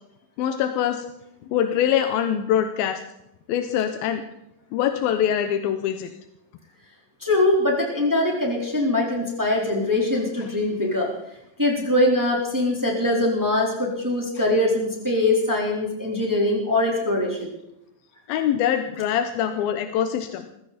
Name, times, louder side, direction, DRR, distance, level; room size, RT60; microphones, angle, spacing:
voice 1, 0.4-1.0 1.4-3.0 3.5-4.3 4.7-6.1 14.4-14.5 18.3-20.5, left 9 dB, 90° left, 8 dB, 2.8 m, -24 dB
voice 2, 7.2-11.1 11.6-17.6, left 1 dB, 5° right, -1 dB, 3.4 m, -22 dB
21.5 x 15.0 x 4.3 m, 0.82 s
omnidirectional pair, 4.1 m